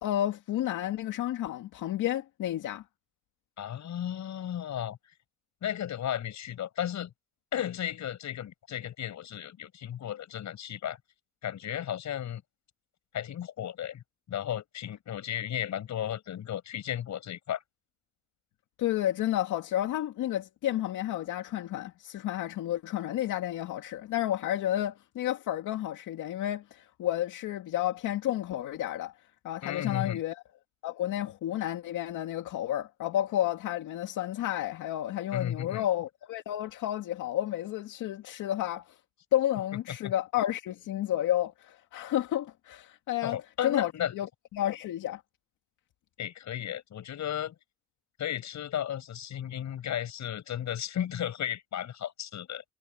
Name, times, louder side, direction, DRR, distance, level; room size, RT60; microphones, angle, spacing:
voice 1, 0.0-2.8 18.8-29.1 29.4-30.4 30.8-39.0 39.3-43.4 43.6-44.3 44.5-45.2, left 12 dB, 85° left, 2.3 m, -31 dB
voice 2, 3.6-5.1 5.6-7.1 7.5-11.0 11.4-12.4 13.1-17.6 29.6-30.2 35.3-35.8 40.0-40.1 43.2-44.1 46.2-47.5 48.2-52.6, left 10 dB, 65° left, 7.5 m, -34 dB
cardioid pair, 90°, 30 cm